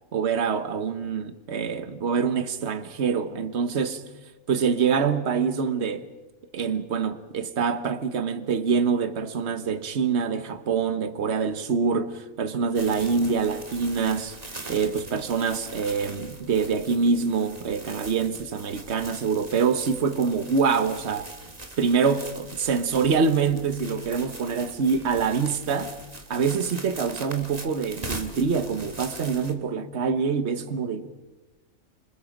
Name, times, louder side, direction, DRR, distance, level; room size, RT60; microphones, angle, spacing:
voice 1, 0.1-4.0 4.5-6.1 6.5-14.4 14.7-21.3 21.8-26.0 26.3-31.1, right 5 dB, 50° right, 1.4 m, -25 dB
sound 1, 12.7-29.5, right 2 dB, 30° right, 2.0 m, -41 dB
26.5 x 26.5 x 5.2 m
omnidirectional pair, 1.5 m